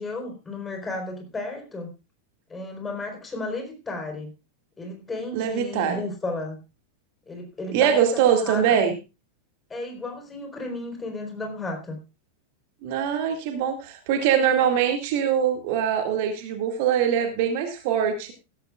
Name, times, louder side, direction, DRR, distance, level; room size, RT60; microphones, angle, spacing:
voice 1, 0.0-1.9 2.5-4.3 4.8-6.6 7.3-8.9 9.7-12.0, left 2 dB, 15° left, 3 dB, 4.3 m, -33 dB
voice 2, 5.3-6.0 7.7-9.0 12.8-18.3, right 8 dB, 50° right, 5 dB, 2.2 m, -23 dB
16.0 x 15.0 x 2.5 m, 0.28 s
figure-of-eight pair, 90°, 0 cm